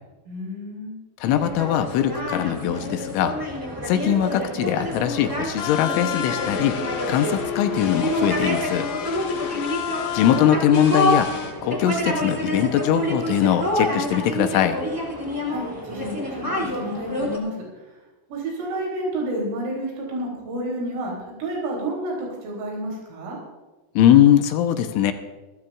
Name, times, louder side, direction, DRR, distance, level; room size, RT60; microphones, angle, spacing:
voice 1, 0.3-1.0 15.4-17.8 18.3-23.4, right 1 dB, 85° right, -2 dB, 5.9 m, -30 dB
voice 2, 1.2-3.4 3.9-6.8 7.1-8.9 10.1-11.3 11.6-14.8 24.0-25.1, left 10 dB, 80° left, 7 dB, 3.2 m, -21 dB
sound 1, 1.3-17.4, left 1 dB, 35° right, 0.3 m, -28 dB
sound 2, 5.6-11.5, left 9 dB, 65° left, 3.4 m, -30 dB
27.5 x 13.0 x 2.5 m, 1.1 s
omnidirectional pair, 5.8 m